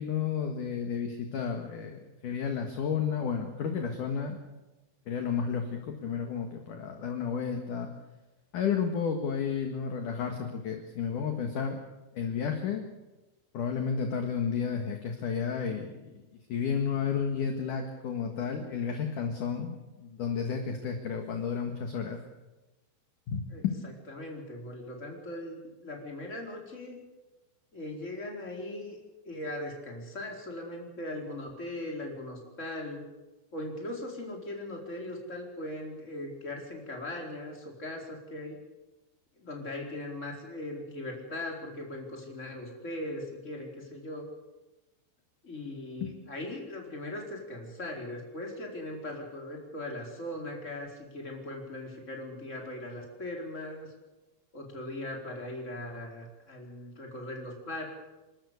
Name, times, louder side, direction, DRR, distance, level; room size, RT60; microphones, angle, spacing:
voice 1, 0.0-4.4 5.1-7.9 8.5-11.8 12.1-12.9 13.5-16.2 16.5-22.2 23.3-23.7 46.0-46.1, left 6 dB, 55° left, 4 dB, 2.6 m, -32 dB
voice 2, 23.5-27.0 27.7-29.0 29.2-33.1 33.5-38.6 39.4-44.3 45.4-53.9 54.5-57.9, left 1 dB, 15° left, 0 dB, 4.4 m, -39 dB
28.5 x 13.5 x 8.3 m, 1.1 s
omnidirectional pair, 5.4 m